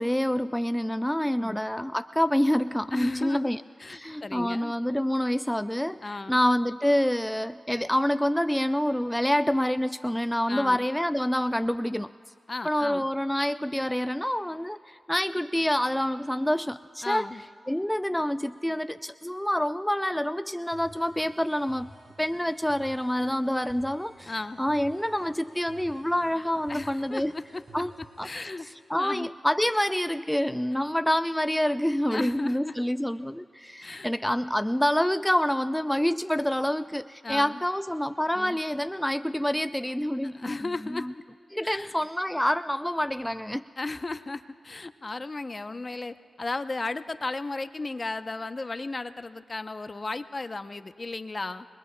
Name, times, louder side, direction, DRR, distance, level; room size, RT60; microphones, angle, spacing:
voice 1, 0.0-3.6 3.9-12.1 12.6-17.3 17.7-21.9 22.2-27.3 27.7-27.9 28.2-28.3 28.6-40.6 40.9-41.1 41.5-43.6, equal, 5° left, 12 dB, 0.3 m, -27 dB
voice 2, 2.9-3.5 3.8-4.7 6.0-6.4 10.5-10.9 12.5-13.1 17.0-17.4 24.3-24.6 26.7-27.6 28.2-28.7 28.9-29.3 32.1-32.7 33.8-34.1 37.2-37.6 38.3-38.6 40.4-41.1 41.6-41.9 43.8-51.7, left 3 dB, 40° left, 11 dB, 0.7 m, -35 dB
sound 1, 20.7-28.5, right 2 dB, 55° right, 3.5 m, -52 dB
26.0 x 21.5 x 2.2 m, 2.4 s
cardioid pair, 45°, 0 cm